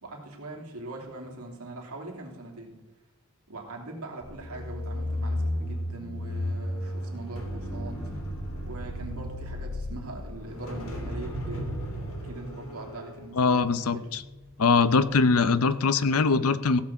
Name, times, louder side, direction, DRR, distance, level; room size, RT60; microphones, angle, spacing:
voice 1, 0.0-2.8 3.5-8.0 8.7-11.6 12.2-14.1 15.6-16.2 16.7-16.8, right 2 dB, 85° right, 0 dB, 3.0 m, -41 dB
sound 1, 4.2-14.5 14.9-15.2, left 1 dB, 70° left, 2.7 m, -34 dB
voice 2, 13.3-14.2 14.6-16.8, left 4 dB, 85° left, 15 dB, 0.7 m, -22 dB
16.0 x 6.5 x 7.2 m, 1.1 s
head